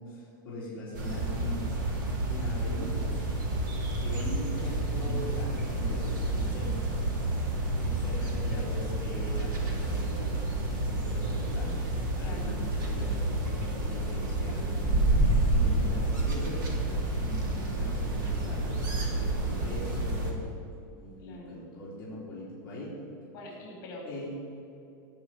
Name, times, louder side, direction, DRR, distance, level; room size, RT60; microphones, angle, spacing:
voice 1, 0.0-1.6 2.3-3.2 3.9-6.8 7.2-7.3 7.8-11.7 12.2-16.7 17.1-18.9 19.2-20.5 21.0-22.9 24.1-24.3, left 1 dB, 15° left, -11 dB, 3.4 m, -41 dB
sound 1, 0.9-20.3, right 2 dB, 65° right, 3.4 m, -29 dB
voice 2, 4.8-5.1 12.2-12.6 17.4-17.6 21.2-21.6 23.3-24.1, left 2 dB, 30° left, -1 dB, 4.5 m, -45 dB
17.5 x 6.7 x 9.3 m, 2.7 s
supercardioid pair, 175°, 12 cm